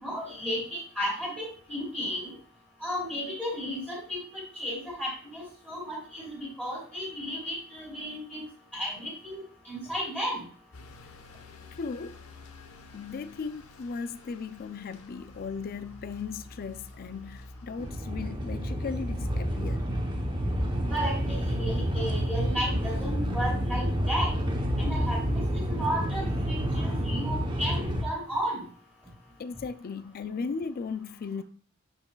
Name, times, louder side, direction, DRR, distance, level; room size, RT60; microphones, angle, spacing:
voice 1, 0.0-2.3 2.8-8.4 8.7-10.5 20.8-24.3 24.8-28.6, equal, 5° left, 3.2 m, -34 dB
sound 1, 10.7-17.9, left 3 dB, 85° left, 0.9 m, -50 dB
voice 2, 11.8-12.1 12.9-19.9 29.4-31.4, left 5 dB, 45° left, 0.3 m, -37 dB
sound 2, 17.8-28.0, equal, 20° right, 0.9 m, -29 dB
11.0 x 4.4 x 2.3 m
head